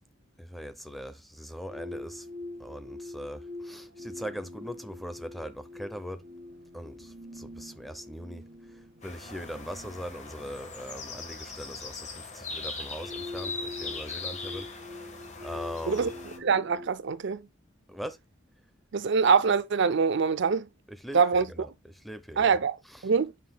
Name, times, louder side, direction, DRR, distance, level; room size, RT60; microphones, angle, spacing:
voice 1, 0.4-2.2 2.6-6.2 6.7-7.1 7.4-8.4 9.0-12.1 12.3-14.7 15.4-16.1 17.9-18.2 21.0-21.2 22.0-22.5, equal, ahead, 0.7 m, -40 dB
sound 1, 1.7-16.9, left 2 dB, 45° right, 1.3 m, -45 dB
sound 2, 9.0-16.4, left 4 dB, 35° left, 1.4 m, -40 dB
voice 2, 16.4-17.4 18.9-20.6 21.1-21.7 22.4-22.7 23.0-23.3, right 5 dB, 60° right, 0.5 m, -24 dB
9.1 x 5.7 x 2.3 m
head